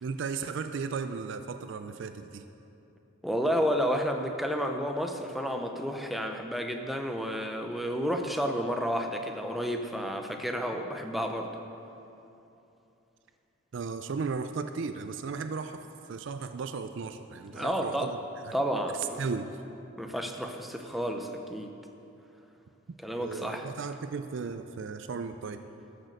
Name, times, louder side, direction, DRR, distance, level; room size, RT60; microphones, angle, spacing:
voice 1, 0.0-2.4 13.7-18.2 18.4-18.5 19.0-19.5 23.2-25.6, right 5 dB, 60° right, 9 dB, 0.4 m, -35 dB
voice 2, 3.2-11.5 17.5-18.1 18.5-19.2 20.0-21.8 23.0-23.7, equal, ahead, 4 dB, 0.6 m, -31 dB
12.5 x 6.5 x 6.6 m, 2.9 s
head